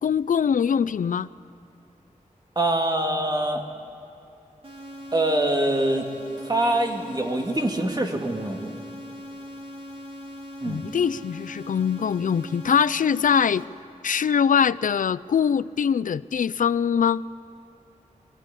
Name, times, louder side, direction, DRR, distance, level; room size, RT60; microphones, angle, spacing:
voice 1, 0.0-1.3 10.6-13.6 14.0-17.2, left 7 dB, 85° left, 18 dB, 0.4 m, -22 dB
voice 2, 2.6-3.6 5.1-6.1 6.4-8.7 10.6-10.8, right 1 dB, 30° right, 3 dB, 2.1 m, -24 dB
sound 1, 4.6-13.6, equal, 45° right, 3.3 m, -40 dB
23.0 x 15.0 x 9.9 m, 2.8 s
wide cardioid pair, 100°, 13 cm